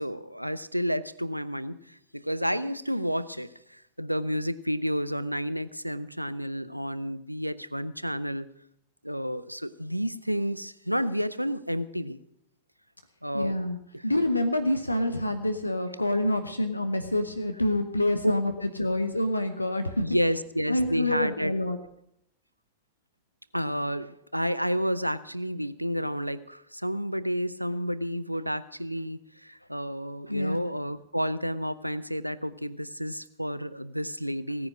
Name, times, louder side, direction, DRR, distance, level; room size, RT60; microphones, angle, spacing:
voice 1, 0.0-8.5 9.0-12.2 13.2-13.6 13.9-14.1 20.0-21.5 23.5-34.7, equal, 90° right, 16 dB, 0.5 m, -30 dB
voice 2, 13.3-13.8 14.0-20.1 20.7-21.8 30.3-30.6, left 1 dB, 85° left, 8 dB, 0.8 m, -27 dB
16.5 x 9.6 x 6.1 m, 0.75 s
figure-of-eight pair, 90°, 0 cm